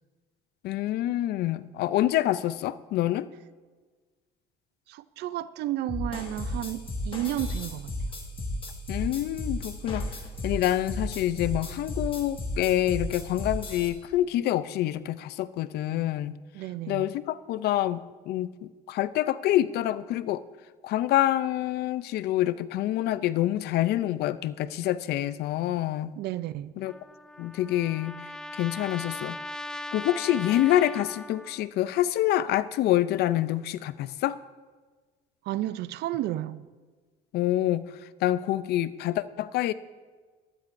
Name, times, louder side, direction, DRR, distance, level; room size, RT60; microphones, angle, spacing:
voice 1, 0.6-3.3 8.9-10.1 10.4-16.4 16.9-20.4 20.8-26.1 26.8-26.9 27.4-28.1 28.5-29.4 29.9-34.4 37.3-37.9 38.2-39.7, left 13 dB, 75° left, 0.5 m, -26 dB
voice 2, 4.9-7.9 16.5-17.1 26.2-26.7 35.4-36.7, right 14 dB, 75° right, 0.5 m, -32 dB
sound 1, 5.9-13.9, left 1 dB, 30° left, 1.7 m, -34 dB
Trumpet, 26.9-31.7, left 1 dB, 5° left, 0.4 m, -39 dB
15.5 x 12.5 x 2.6 m
cardioid pair, 110°, 17 cm